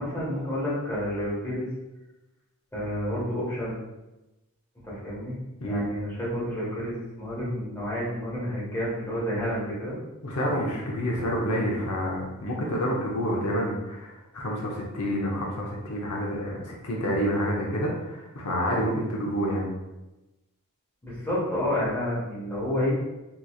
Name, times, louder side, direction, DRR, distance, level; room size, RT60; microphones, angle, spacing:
voice 1, 0.0-1.7 2.7-3.8 4.8-5.3 5.6-10.0 21.0-22.9, equal, 10° left, -9 dB, 1.4 m, -30 dB
voice 2, 10.2-19.7, equal, 85° left, -2 dB, 0.7 m, -28 dB
3.8 x 3.0 x 2.4 m, 1.0 s
head